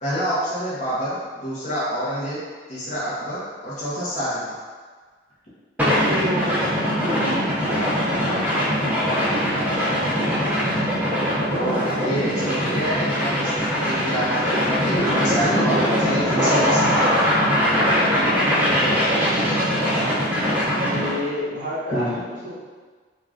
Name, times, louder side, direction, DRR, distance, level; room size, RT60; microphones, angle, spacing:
voice 1, 0.0-2.4 2.7-4.5 11.5-16.9 21.9-22.2, equal, 40° left, -10 dB, 0.6 m, -27 dB
sound 1, 5.8-21.2, equal, 10° right, 0.4 m, -21 dB
voice 2, 5.8-6.6 7.0-9.9 16.4-20.2 20.8-22.7, equal, 40° right, -11 dB, 0.7 m, -32 dB
2.4 x 2.2 x 3.3 m, 1.5 s
head